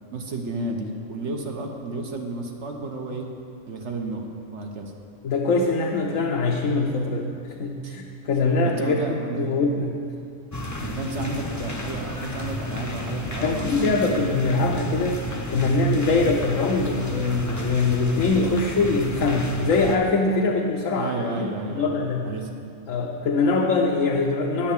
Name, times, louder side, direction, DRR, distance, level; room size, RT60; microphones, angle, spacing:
voice 1, 0.1-3.3 3.7-4.3 4.5-4.9 7.8-8.0 8.6-9.6 10.8-13.9 20.9-21.9 22.2-22.5, right 2 dB, 65° right, 2 dB, 1.3 m, -32 dB
voice 2, 5.2-7.3 7.6-9.9 10.8-10.9 13.4-22.3 22.9-24.7, left 3 dB, 80° left, 0 dB, 1.2 m, -23 dB
sound 1, 10.5-20.0, left 1 dB, 20° left, 0.6 m, -32 dB
10.5 x 5.8 x 8.4 m, 2.5 s
omnidirectional pair, 1.3 m